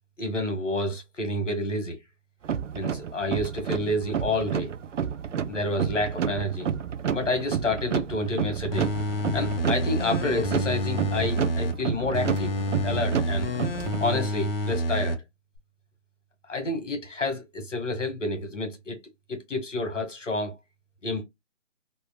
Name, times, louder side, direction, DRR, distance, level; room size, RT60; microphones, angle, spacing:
voice 1, 0.2-2.0 2.7-4.7 5.5-6.7 7.1-8.9 9.3-12.5 12.8-13.5 14.0-15.2 16.5-19.0 19.3-20.5 21.0-21.2, left 2 dB, 85° left, 1.9 m, -29 dB
sound 1, 2.4-14.3, right 7 dB, 90° right, 0.5 m, -30 dB
sound 2, 8.7-11.7 12.1-15.2 15.6-15.7, left 1 dB, 50° left, 0.8 m, -28 dB
3.5 x 2.2 x 2.3 m
hypercardioid pair, 160°, 36 cm